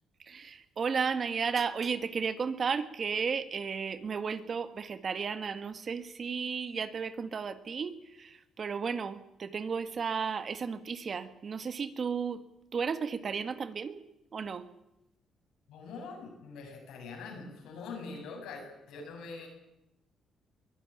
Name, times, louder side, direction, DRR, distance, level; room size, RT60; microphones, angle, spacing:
voice 1, 0.3-12.4 12.7-14.0 14.3-14.7, right 6 dB, 45° right, 11 dB, 1.6 m, -34 dB
voice 2, 15.7-19.5, left 4 dB, 85° left, 2 dB, 8.0 m, -43 dB
22.5 x 15.0 x 10.0 m, 0.89 s
cardioid pair, 90°, 0 cm